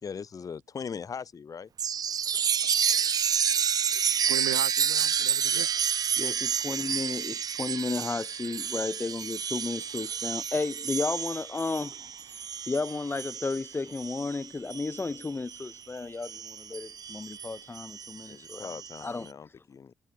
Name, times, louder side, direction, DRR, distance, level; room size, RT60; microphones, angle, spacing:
voice 1, 0.0-1.7 5.5-5.7 18.3-19.9, left 6 dB, 50° left, 3.0 m, -40 dB
Chime, 1.8-15.8 16.2-19.1, right 8 dB, 55° right, 1.1 m, -30 dB
voice 2, 2.3-2.8 3.9-5.8, right 25 dB, 85° right, 1.5 m, -39 dB
voice 3, 6.2-11.9 12.7-18.7 19.0-19.3, left 3 dB, 30° left, 1.2 m, -33 dB
hypercardioid pair, 40°, 8 cm